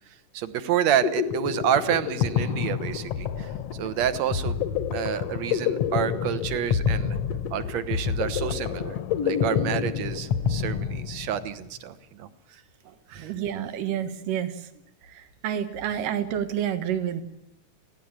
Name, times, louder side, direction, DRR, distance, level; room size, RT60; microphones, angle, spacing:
voice 1, 0.3-3.5 3.8-4.6 4.9-7.2 7.5-12.6 13.1-13.3, right 10 dB, 65° right, 13 dB, 2.1 m, -29 dB
sound 1, 0.7-11.5, left 8 dB, 65° left, 1.7 m, -28 dB
voice 2, 13.2-14.7 15.0-17.2, right 9 dB, 85° right, 10 dB, 3.0 m, -29 dB
25.0 x 16.5 x 8.9 m, 0.85 s
omnidirectional pair, 3.7 m